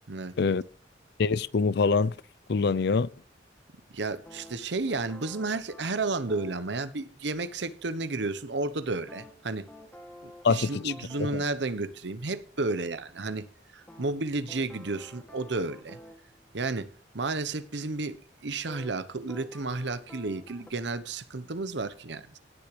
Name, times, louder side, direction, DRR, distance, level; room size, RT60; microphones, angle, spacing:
voice 1, 0.1-0.5 3.9-9.7 10.2-13.5 13.7-16.0 16.5-18.2 18.4-22.4, right 3 dB, 65° right, 0.9 m, -32 dB
voice 2, 1.2-2.1 2.5-3.1 10.4-10.9 11.2-11.4, left 4 dB, 65° left, 0.5 m, -24 dB
sound 1, 4.3-6.6 9.1-11.5 13.9-16.2 18.7-18.9 19.3-20.7, equal, 10° left, 2.2 m, -49 dB
17.0 x 6.8 x 3.2 m
head